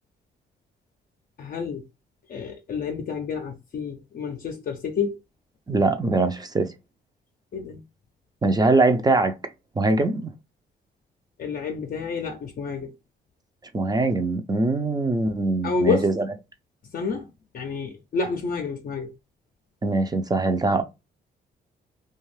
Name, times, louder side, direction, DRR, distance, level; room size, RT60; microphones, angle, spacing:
voice 1, 1.4-1.8 2.3-5.2 7.5-7.8 11.4-12.9 15.6-16.1 16.9-19.1, left 5 dB, 50° left, 0.5 m, -29 dB
voice 2, 5.7-6.7 8.4-9.3 9.8-10.3 13.7-16.3 19.8-20.8, right 2 dB, 20° right, 0.5 m, -22 dB
2.5 x 2.3 x 3.2 m
cardioid pair, 75°, 19 cm